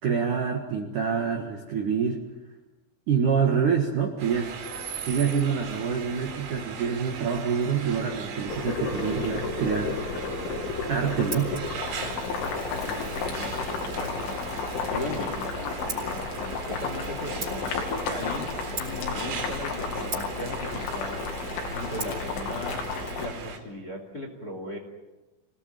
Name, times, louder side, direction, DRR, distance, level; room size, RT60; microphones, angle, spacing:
voice 1, 0.0-2.2 3.1-4.5 5.1-9.9 10.9-11.6, right 6 dB, 55° right, 1 dB, 2.4 m, -26 dB
sound 1, 4.2-23.6, right 6 dB, 85° right, 5.3 m, -38 dB
Boiling, 8.5-23.3, left 4 dB, 75° left, 5.0 m, -32 dB
Scissors, 10.7-24.3, right 3 dB, 25° right, 4.6 m, -45 dB
voice 2, 12.7-14.4 14.9-16.1 16.4-18.5 18.7-22.8 23.2-24.8, left 1 dB, 25° left, 2 dB, 2.4 m, -38 dB
26.5 x 18.0 x 9.2 m, 1.1 s
omnidirectional pair, 5.6 m